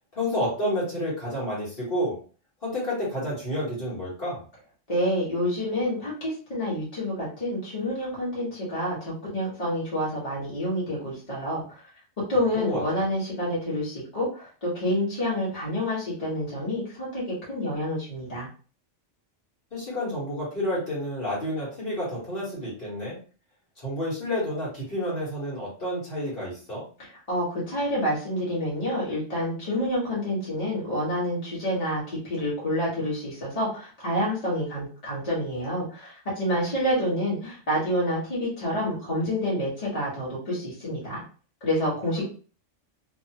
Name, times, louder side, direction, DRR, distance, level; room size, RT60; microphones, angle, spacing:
voice 1, 0.1-2.2 2.6-4.4 12.5-12.8 19.7-23.2 23.8-26.8, left 1 dB, 50° left, -8 dB, 1.5 m, -30 dB
voice 2, 4.9-11.6 12.3-17.2 17.5-18.5 27.3-41.2 41.6-42.2, equal, 30° left, -7 dB, 1.4 m, -28 dB
2.8 x 2.4 x 2.8 m, 0.38 s
omnidirectional pair, 1.2 m